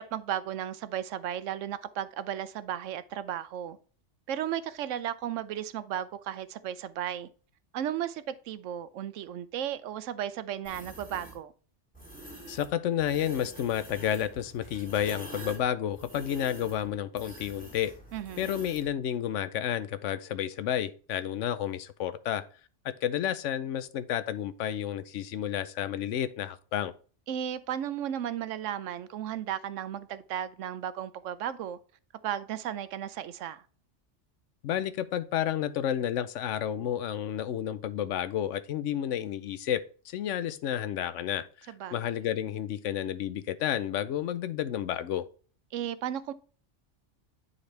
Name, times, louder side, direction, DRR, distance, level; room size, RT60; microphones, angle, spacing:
voice 1, 0.0-3.8 4.3-7.3 7.7-11.5 18.1-18.5 27.3-31.8 32.2-33.6 41.7-42.0 45.7-46.3, right 10 dB, 90° right, 1.0 m, -35 dB
sound 1, 10.6-11.4 11.9-12.7 13.0-18.9, right 1 dB, 5° left, 2.8 m, -46 dB
voice 2, 12.5-17.9 18.4-22.4 22.8-26.9 34.6-39.8 40.1-45.2, left 10 dB, 80° left, 1.0 m, -31 dB
9.7 x 4.1 x 3.2 m
omnidirectional pair, 1.2 m